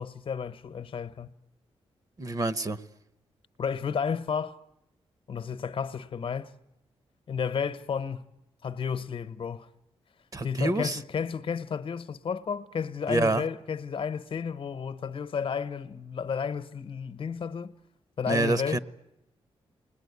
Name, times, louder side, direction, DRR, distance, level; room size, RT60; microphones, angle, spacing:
voice 1, 0.0-1.3 3.6-4.6 5.3-6.5 7.3-8.3 8.6-9.7 10.4-17.7 18.2-18.8, left 6 dB, 55° left, 1.0 m, -32 dB
voice 2, 2.2-2.8 10.3-11.0 13.1-13.4 18.3-18.8, right 2 dB, 35° right, 0.9 m, -27 dB
28.5 x 20.5 x 9.6 m
cardioid pair, 90°, 10 cm